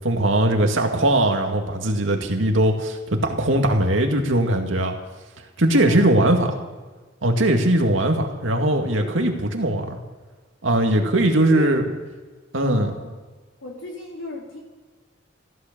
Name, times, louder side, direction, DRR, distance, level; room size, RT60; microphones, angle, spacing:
voice 1, 0.0-4.9 5.6-6.5 7.2-10.0 10.6-11.8 12.5-12.9, right 1 dB, 85° right, 3 dB, 2.1 m, -20 dB
voice 2, 5.7-6.6 11.4-11.7 12.6-13.1 13.6-14.6, left 1 dB, 85° left, -1 dB, 4.4 m, -36 dB
15.5 x 11.5 x 6.8 m, 1.3 s
head